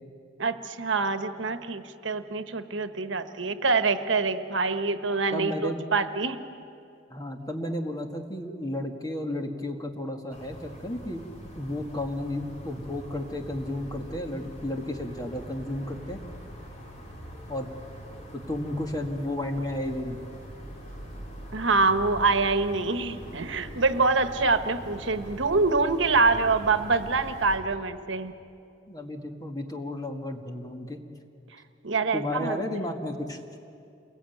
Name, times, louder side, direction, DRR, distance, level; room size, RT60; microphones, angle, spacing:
voice 1, 0.4-6.4 21.5-28.3 31.8-32.6, right 3 dB, 75° right, 10 dB, 1.2 m, -25 dB
voice 2, 5.3-5.8 7.1-11.3 11.6-16.2 17.5-17.7 18.3-20.2 28.9-31.0 32.1-33.4, left 1 dB, 20° left, 4 dB, 1.8 m, -33 dB
sound 1, 10.3-27.6, equal, 35° left, 4.6 m, -43 dB
28.5 x 22.0 x 9.3 m, 2.6 s
head